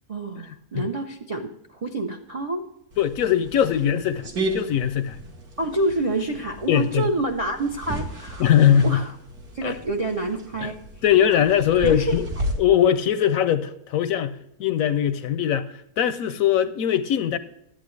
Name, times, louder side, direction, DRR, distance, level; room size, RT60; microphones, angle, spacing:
voice 1, 0.1-2.7 5.6-8.5 8.8-9.1 9.5-10.8 11.8-12.2, right 2 dB, 55° right, 0.4 m, -27 dB
sound 1, 2.9-12.5, right 1 dB, 70° right, 2.1 m, -34 dB
voice 2, 3.0-5.2 6.7-7.1 8.4-9.0 9.6-9.8 10.6-10.7 11.0-12.3 12.6-17.4, left 9 dB, 70° left, 0.9 m, -21 dB
11.5 x 8.7 x 3.1 m
omnidirectional pair, 1.7 m